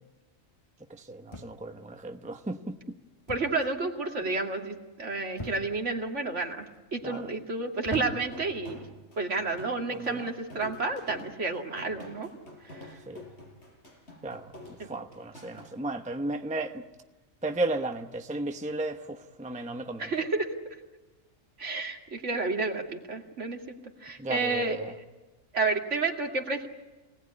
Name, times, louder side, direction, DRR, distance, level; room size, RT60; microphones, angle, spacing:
voice 1, 1.1-2.7 7.0-7.3 9.9-10.3 13.1-13.2 14.2-14.5 14.9-16.8 17.4-20.1 24.2-24.9, right 2 dB, 5° right, 0.8 m, -34 dB
sound 1, 1.3-1.8 3.3-3.7 4.0-4.4 5.4-5.9 6.6-7.0 7.8-8.5 9.4-9.7, left 1 dB, 20° left, 1.5 m, -41 dB
voice 2, 3.3-6.6 6.9-8.9 9.2-12.3 12.6-12.9 20.0-20.6 21.6-23.6 24.0-24.8 25.5-26.7, right 3 dB, 60° right, 2.6 m, -30 dB
sound 2, 8.3-15.7, left 2 dB, 50° left, 5.8 m, -47 dB
26.0 x 18.5 x 9.8 m
omnidirectional pair, 1.4 m